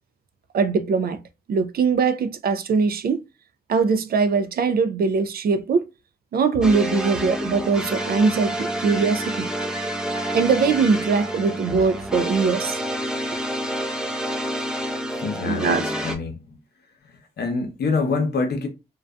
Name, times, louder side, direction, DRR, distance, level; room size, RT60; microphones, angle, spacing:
voice 1, 0.5-1.2 1.5-3.2 3.7-5.9 6.3-9.5 10.3-12.8 15.4-15.9, right 5 dB, 60° right, 0.4 m, -21 dB
sound 1, 6.6-16.2, equal, 5° right, 0.5 m, -28 dB
voice 2, 15.1-16.6 17.4-18.7, left 4 dB, 70° left, 0.8 m, -25 dB
2.5 x 2.2 x 2.2 m
cardioid pair, 70°, 17 cm